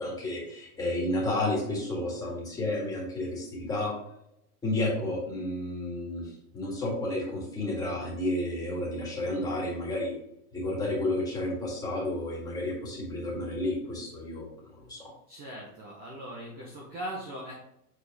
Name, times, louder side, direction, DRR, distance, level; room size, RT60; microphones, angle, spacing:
voice 1, 0.0-3.9 4.6-10.1 10.5-14.5 14.8-15.1, left 1 dB, 10° left, -5 dB, 1.8 m, -31 dB
voice 2, 15.3-17.5, right 1 dB, 20° right, -3 dB, 0.9 m, -39 dB
7.6 x 4.2 x 3.5 m, 0.79 s
supercardioid pair, 165°, 45 cm